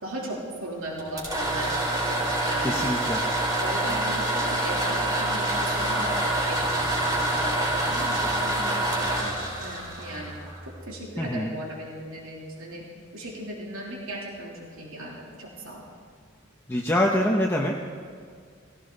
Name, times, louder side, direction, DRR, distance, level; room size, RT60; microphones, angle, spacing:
voice 1, 0.0-2.9 3.6-6.2 6.5-10.4 10.6-12.9 13.1-15.8, right 1 dB, 70° right, -3 dB, 3.2 m, -37 dB
sound 1, 1.0-10.8, right 1 dB, 15° right, 3.9 m, -26 dB
voice 2, 2.6-3.2 11.2-11.5 16.7-17.7, left 1 dB, 10° left, -1 dB, 0.9 m, -24 dB
18.5 x 17.0 x 4.0 m, 2.1 s
head